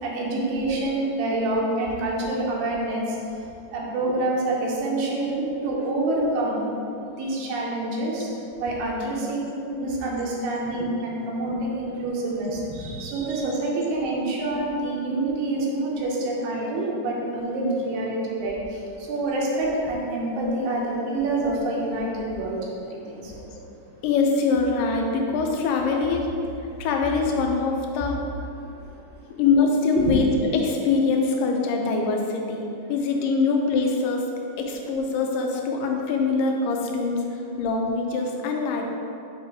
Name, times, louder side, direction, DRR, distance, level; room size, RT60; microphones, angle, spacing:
voice 1, 0.0-3.2 3.7-6.7 7.1-8.3 8.6-23.4 29.9-30.1, right 2 dB, 85° right, -4 dB, 2.6 m, -27 dB
voice 2, 24.0-26.3 26.8-28.3 29.4-30.3 30.5-34.3 34.6-37.2 37.6-38.9, left 4 dB, 85° left, 1 dB, 2.3 m, -23 dB
6.7 x 3.2 x 4.7 m, 2.7 s
omnidirectional pair, 3.9 m